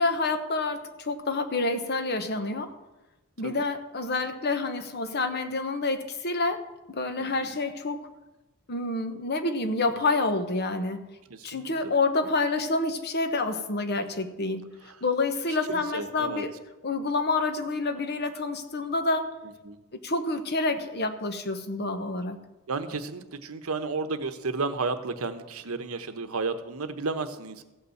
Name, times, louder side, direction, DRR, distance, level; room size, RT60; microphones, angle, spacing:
voice 1, 0.0-2.7 3.4-6.6 6.9-8.0 8.7-11.0 11.4-14.7 15.0-16.5 16.8-19.3 19.9-22.4, left 3 dB, 50° left, 9 dB, 1.1 m, -28 dB
voice 2, 2.4-2.7 3.4-3.6 7.2-7.3 11.3-11.9 14.0-14.1 14.8-15.0 15.5-16.4 19.6-19.8 22.7-27.6, right 4 dB, 85° right, 9 dB, 1.0 m, -33 dB
15.5 x 5.6 x 7.7 m, 1.0 s
head